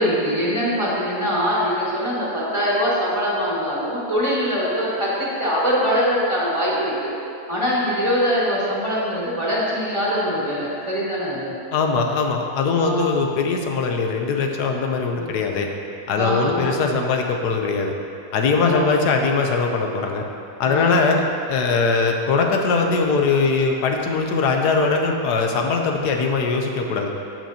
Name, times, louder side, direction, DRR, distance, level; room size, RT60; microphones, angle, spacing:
voice 1, 0.0-7.1 7.5-11.5 12.7-13.1 15.2-15.3 16.1-16.8 18.6-19.0 20.6-21.2, equal, 20° right, -8 dB, 1.9 m, -23 dB
voice 2, 11.7-15.7 16.1-17.9 18.3-20.2 20.6-21.2 21.5-27.1, left 4 dB, 85° left, 3 dB, 1.3 m, -21 dB
15.5 x 6.0 x 2.8 m, 2.6 s
omnidirectional pair, 1.7 m